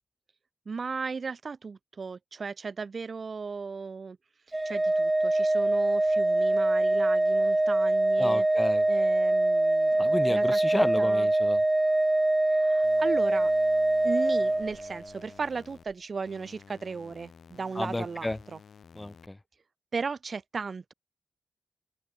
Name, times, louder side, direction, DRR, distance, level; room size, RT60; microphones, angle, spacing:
voice 1, 0.7-4.2 4.7-8.5 8.9-11.3 12.5-13.5 14.0-18.6 19.9-20.9, right 5 dB, 60° right, 1.8 m, -36 dB
Organ, 4.5-15.2, right 2 dB, 25° right, 0.3 m, -24 dB
voice 2, 8.2-8.8 10.0-11.6 17.8-18.4 19.0-19.4, left 1 dB, 20° left, 0.6 m, -31 dB
sound 1, 12.8-15.8 16.3-19.3, left 6 dB, 75° left, 6.3 m, -53 dB
cardioid pair, 45°, 0 cm